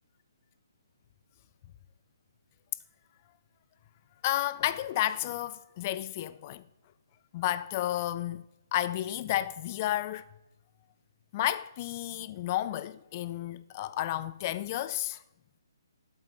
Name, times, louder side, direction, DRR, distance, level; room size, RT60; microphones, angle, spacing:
voice 1, 4.2-6.6 7.3-8.4 8.7-10.2 11.3-15.2, left 13 dB, 30° left, 0.3 m, -31 dB
12.0 x 8.2 x 3.3 m
figure-of-eight pair, 145°, 2 cm